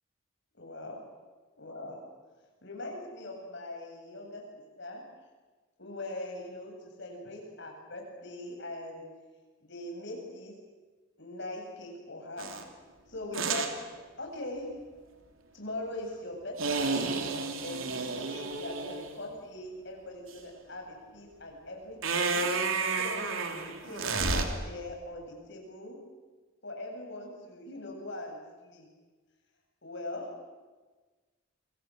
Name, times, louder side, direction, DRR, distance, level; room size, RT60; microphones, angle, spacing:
voice 1, 0.5-1.0 1.6-2.0 2.6-4.4 4.8-5.0 5.8-9.0 9.6-10.5 11.2-12.5 13.1-13.7 14.2-14.7 15.5-17.1 17.5-22.5 23.0-26.0 26.6-28.4 28.6-28.9 29.8-30.3, left 1 dB, 55° left, 1 dB, 7.8 m, -41 dB
sound 1, 12.4-12.6 13.3-13.7 16.6-19.1 22.0-24.4, right 4 dB, 80° right, 3.1 m, -31 dB
28.5 x 24.0 x 7.9 m, 1.3 s
head